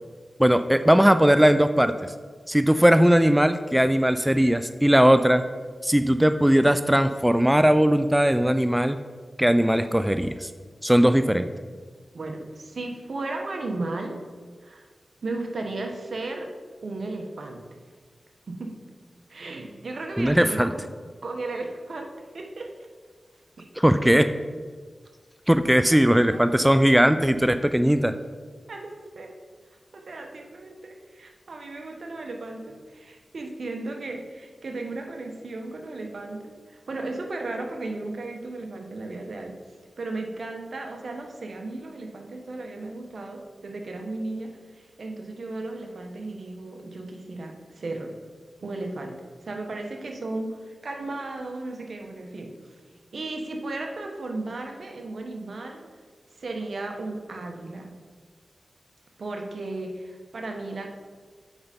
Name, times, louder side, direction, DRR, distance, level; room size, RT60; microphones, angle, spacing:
voice 1, 0.4-1.9 2.5-5.4 5.8-9.0 9.4-10.5 10.8-11.5 20.2-20.7 23.8-24.3 25.5-28.1, equal, 10° right, 10 dB, 0.4 m, -19 dB
voice 2, 12.1-14.2 14.6-14.9 15.2-16.5 16.8-17.6 18.5-18.8 19.3-20.9 21.2-22.7 23.6-23.7 25.9-26.0 26.3-26.4 28.7-29.3 29.9-39.6 40.0-48.2 48.6-52.7 53.1-55.8 56.4-57.9 59.2-60.9, right 2 dB, 70° right, 3 dB, 1.1 m, -35 dB
8.0 x 5.4 x 5.1 m, 1.5 s
cardioid pair, 50°, 0 cm